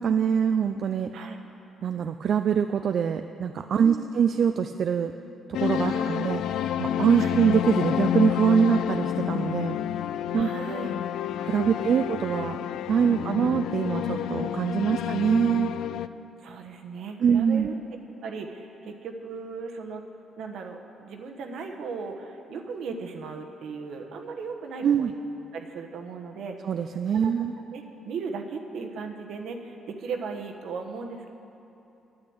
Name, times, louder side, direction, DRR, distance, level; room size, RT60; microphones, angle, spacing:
voice 1, 0.0-1.1 1.8-5.1 5.5-6.4 6.8-9.8 10.3-10.9 11.4-12.6 12.9-15.7 17.2-17.7 24.8-25.1 26.6-27.5, right 7 dB, 60° right, 8 dB, 0.4 m, -24 dB
voice 2, 3.8-4.1 5.8-6.3 7.2-7.4 10.4-11.0 11.7-12.0 13.2-13.4 14.9-15.1 16.4-17.7 18.2-20.0 20.4-25.1 25.5-26.6 27.2-27.3 27.7-31.3, right 4 dB, 75° right, 4 dB, 1.1 m, -37 dB
sound 1, 5.5-16.1, left 10 dB, 80° left, 0.3 m, -29 dB
9.8 x 9.6 x 7.9 m, 2.9 s
cardioid pair, 90°, 0 cm